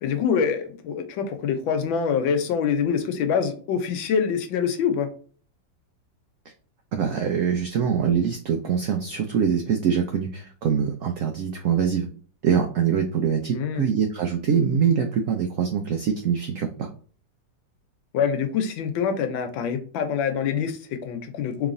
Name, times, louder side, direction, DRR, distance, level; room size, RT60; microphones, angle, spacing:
voice 1, 0.0-5.1 13.5-13.9 18.1-21.7, left 7 dB, 90° left, 7 dB, 1.5 m, -25 dB
voice 2, 6.9-12.1 12.4-16.9, right 7 dB, 85° right, 4 dB, 0.7 m, -24 dB
4.0 x 3.4 x 2.5 m, 0.43 s
omnidirectional pair, 2.0 m